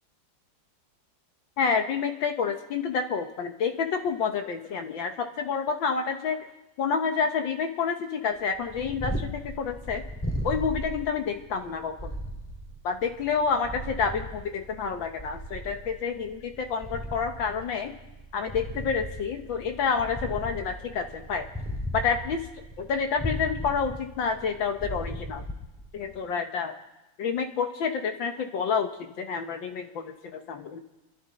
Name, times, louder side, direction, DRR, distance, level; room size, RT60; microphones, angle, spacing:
voice 1, 1.6-6.4 6.8-10.0 10.4-12.1 12.8-17.9 18.3-21.5 21.9-22.4 22.8-25.4 25.9-26.8 27.2-28.9 29.2-30.8, left 6 dB, 75° left, 5 dB, 1.7 m, -29 dB
Purr, 8.5-26.2, equal, 5° left, 1.8 m, -37 dB
27.0 x 11.5 x 4.2 m, 0.96 s
omnidirectional pair, 2.1 m